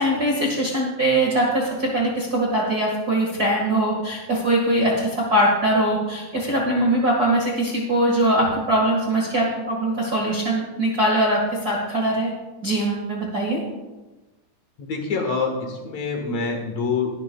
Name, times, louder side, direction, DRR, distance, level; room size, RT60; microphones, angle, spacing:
voice 1, 0.0-12.3 12.6-13.6, right 1 dB, 60° right, -3 dB, 0.9 m, -22 dB
voice 2, 14.8-17.1, left 4 dB, 60° left, 2 dB, 2.0 m, -26 dB
21.5 x 9.9 x 2.3 m, 1.2 s
omnidirectional pair, 4.8 m